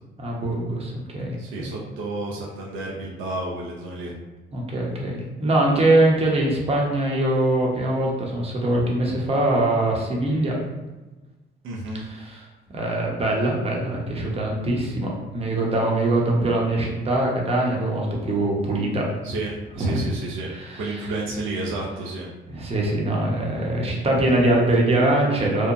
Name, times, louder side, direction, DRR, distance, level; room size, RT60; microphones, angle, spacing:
voice 1, 0.2-1.7 4.5-10.6 12.1-12.4 12.7-19.1 19.8-20.0 20.5-20.9 22.5-25.7, right 1 dB, 30° right, -2 dB, 0.7 m, -23 dB
voice 2, 1.4-4.1 11.6-12.0 19.2-19.5 19.8-20.5 20.8-22.3, right 2 dB, 85° right, -3 dB, 0.5 m, -30 dB
2.8 x 2.1 x 2.4 m, 1.2 s
cardioid pair, 90°, 20 cm